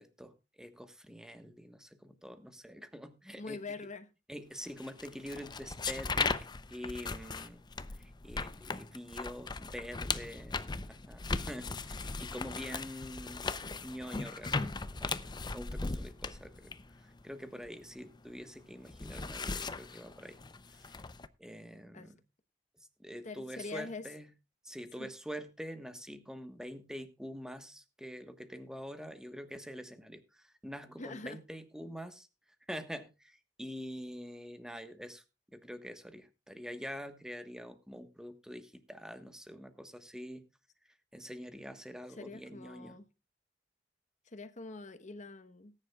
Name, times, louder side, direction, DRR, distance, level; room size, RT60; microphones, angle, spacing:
voice 1, 0.0-3.8 4.3-7.6 8.0-10.6 10.9-13.5 13.8-14.7 15.0-16.7 17.0-20.4 20.8-21.0 21.4-22.2 23.0-24.3 24.6-32.3 32.7-35.2 35.5-40.5 41.1-43.0, equal, 5° right, 1.3 m, -45 dB
voice 2, 3.4-4.1 21.9-22.1 23.2-24.1 25.0-25.1 31.0-31.4 42.1-43.0 44.3-45.7, left 3 dB, 45° left, 1.0 m, -44 dB
sound 1, 4.8-18.3 18.6-21.3, left 4 dB, 25° left, 0.6 m, -38 dB
19.0 x 9.9 x 2.3 m
head